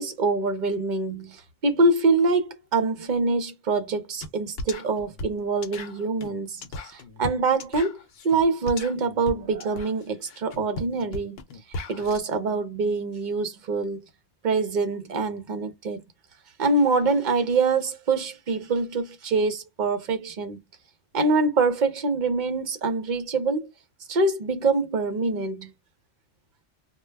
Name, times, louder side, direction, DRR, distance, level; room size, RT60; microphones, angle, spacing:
voice 1, 0.0-8.0 8.2-11.4 11.9-14.0 14.4-16.0 16.6-20.6 21.1-23.7 24.1-25.7, right 3 dB, 50° right, 0.7 m, -25 dB
sound 1, 4.2-4.3 4.6-12.2, left 2 dB, 70° left, 0.8 m, -37 dB
2.2 x 2.0 x 3.2 m
omnidirectional pair, 1.1 m